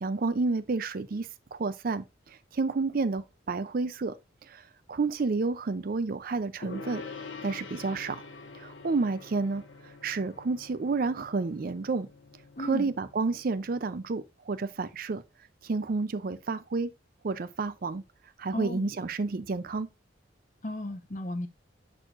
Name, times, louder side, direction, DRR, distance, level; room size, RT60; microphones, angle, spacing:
voice 1, 0.0-4.2 4.5-4.6 4.9-7.0 7.4-8.2 8.5-9.6 10.0-12.1 12.6-15.2 15.6-16.9 17.2-18.0 18.4-19.9, right 3 dB, 50° right, 0.5 m, -30 dB
Gong, 6.6-14.1, left 3 dB, 75° left, 1.4 m, -46 dB
voice 2, 12.6-12.9 18.5-18.9 20.6-21.5, left 1 dB, 40° left, 0.9 m, -35 dB
6.4 x 6.2 x 2.5 m
head